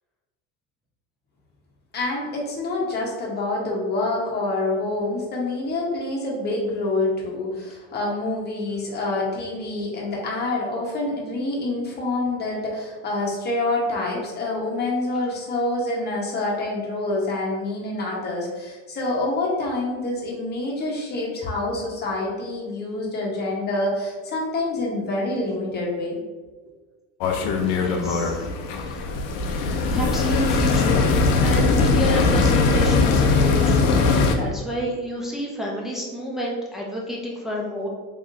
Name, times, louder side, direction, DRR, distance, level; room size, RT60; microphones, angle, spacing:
voice 1, 1.9-26.2, left 2 dB, 30° left, -3 dB, 1.1 m, -27 dB
sound 1, 27.2-34.4, left 4 dB, 80° left, 0.6 m, -20 dB
voice 2, 27.5-28.5 28.7-29.1 29.9-37.9, equal, ahead, -4 dB, 0.6 m, -30 dB
3.6 x 3.1 x 2.6 m, 1.3 s
cardioid pair, 120°, 33 cm